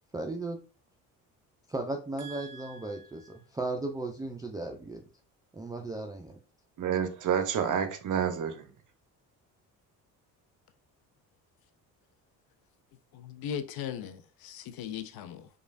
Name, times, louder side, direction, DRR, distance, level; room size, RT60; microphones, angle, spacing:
voice 1, 0.1-0.6 1.7-5.0 5.5-6.4, right 2 dB, 10° right, 0.4 m, -36 dB
voice 2, 2.2-2.6 6.8-8.7, right 8 dB, 45° right, 0.7 m, -30 dB
voice 3, 13.1-15.5, left 8 dB, 55° left, 0.5 m, -38 dB
3.0 x 2.4 x 2.4 m
hypercardioid pair, 60°, 44 cm